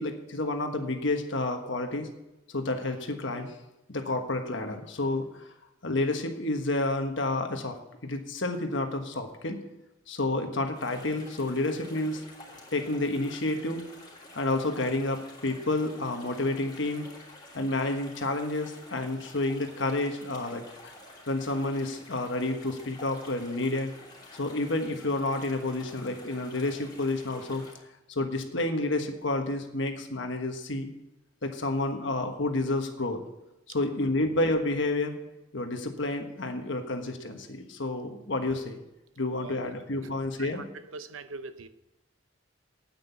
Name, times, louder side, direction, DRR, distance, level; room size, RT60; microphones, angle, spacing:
voice 1, 0.0-2.1 2.5-3.5 3.9-5.5 5.8-9.6 10.1-12.2 12.7-13.8 14.3-17.1 17.5-20.9 21.3-23.9 24.4-27.6 28.1-30.9 31.4-33.2 33.7-35.1 35.5-38.8 39.2-40.6, left 2 dB, 65° left, 5 dB, 1.4 m, -30 dB
sound 1, 10.7-27.7, left 1 dB, 20° left, 3.1 m, -49 dB
voice 2, 39.3-39.7 40.0-40.1 40.4-41.7, right 3 dB, 85° right, 12 dB, 0.8 m, -42 dB
9.5 x 9.0 x 7.1 m, 0.92 s
head